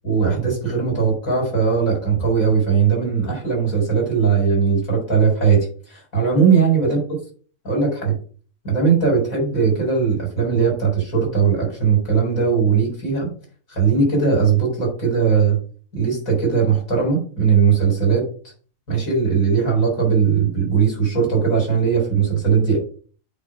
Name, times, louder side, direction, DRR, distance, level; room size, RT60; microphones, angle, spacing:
voice 1, 0.0-7.1 7.6-8.2 8.6-13.3 13.7-15.6 15.9-18.3 18.9-22.8, right 6 dB, 85° left, -2 dB, 4.5 m, -19 dB
8.5 x 3.3 x 5.9 m, 0.42 s
omnidirectional pair, 1.4 m